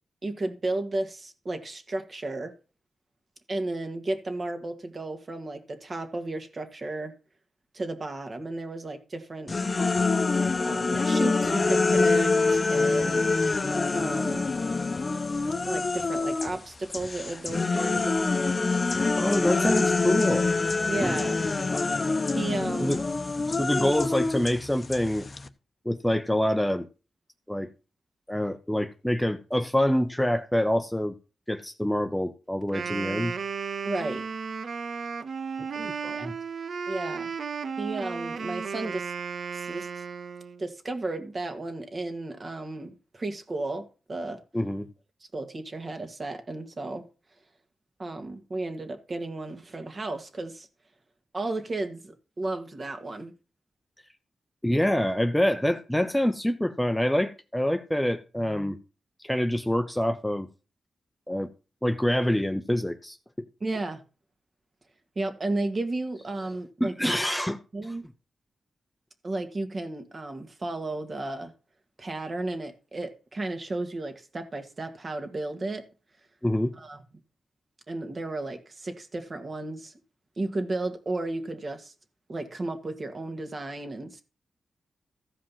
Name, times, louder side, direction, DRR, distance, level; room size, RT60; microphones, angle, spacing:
voice 1, 0.2-2.5 3.5-7.1 7.7-9.5 10.6-13.3 13.9-14.5 15.6-18.2 19.2-19.7 20.9-21.4 22.3-23.0 23.8-23.9 33.8-34.3 36.1-36.3 36.9-37.3 37.8-39.1 39.5-39.9 40.6-44.4 45.3-47.1 48.0-50.7 51.3-53.3 63.6-64.0 65.2-66.9 67.7-68.0 69.2-71.5 72.0-75.9 76.8-77.0 77.9-79.9 80.4-81.9 82.3-84.2, right 2 dB, 40° right, 1.9 m, -33 dB
sound 1, 9.5-16.6 16.9-25.5, left 3 dB, 35° left, 0.9 m, -26 dB
voice 2, 19.2-20.5 21.0-21.2 22.8-23.0 23.5-25.3 25.8-26.9 27.5-27.7 28.3-31.1 31.5-33.3 35.8-36.3 44.5-44.9 54.6-58.8 59.2-60.5 61.3-61.5 61.8-63.2 66.8-67.6 76.4-76.7, left 1 dB, 5° left, 0.8 m, -26 dB
Wind instrument woodwind instrument, 32.6-40.6, right 5 dB, 60° right, 0.6 m, -34 dB
14.5 x 5.1 x 5.7 m
cardioid pair, 90°, 0 cm